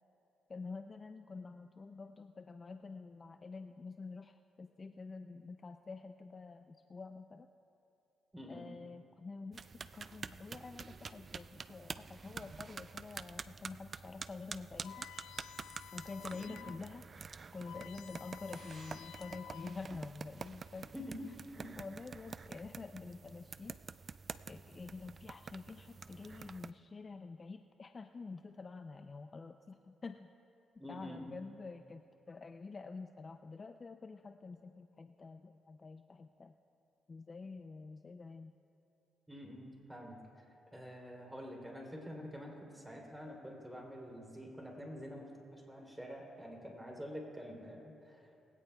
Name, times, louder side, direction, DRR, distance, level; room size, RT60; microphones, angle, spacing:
voice 1, 0.5-7.5 8.5-9.7 9.9-15.1 15.9-17.0 17.5-20.9 21.8-23.8 24.5-30.3 30.9-32.0 32.3-36.5 37.1-38.5, left 4 dB, 35° left, 7 dB, 0.4 m, -48 dB
voice 2, 8.3-8.7 16.3-16.7 20.9-21.8 30.8-31.4 39.3-40.2 40.7-48.3, equal, 5° right, 0 dB, 3.2 m, -47 dB
sound 1, 9.5-26.7, right 5 dB, 40° right, 0.3 m, -48 dB
sound 2, 14.8-16.8 17.2-17.3 17.5-20.0, left 10 dB, 85° left, 0.6 m, -53 dB
22.0 x 16.5 x 2.3 m, 2.9 s
cardioid pair, 90°, 0 cm